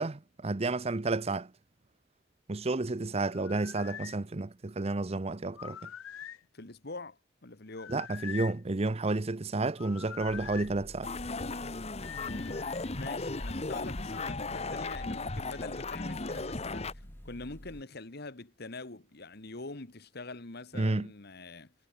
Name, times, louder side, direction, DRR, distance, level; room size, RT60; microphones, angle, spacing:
voice 1, 0.0-1.5 2.5-5.8 7.9-11.1 20.7-21.1, right 2 dB, 30° right, 0.7 m, -31 dB
sound 1, 3.3-4.2 5.5-6.4 7.7-8.6 9.8-10.7 12.0-12.9, left 9 dB, 90° left, 0.5 m, -44 dB
voice 2, 6.5-8.0 12.2-21.7, left 2 dB, 55° left, 1.7 m, -44 dB
sound 2, 10.2-17.8, equal, 10° left, 1.7 m, -49 dB
sound 3, 11.0-16.9, left 3 dB, 30° left, 1.2 m, -36 dB
head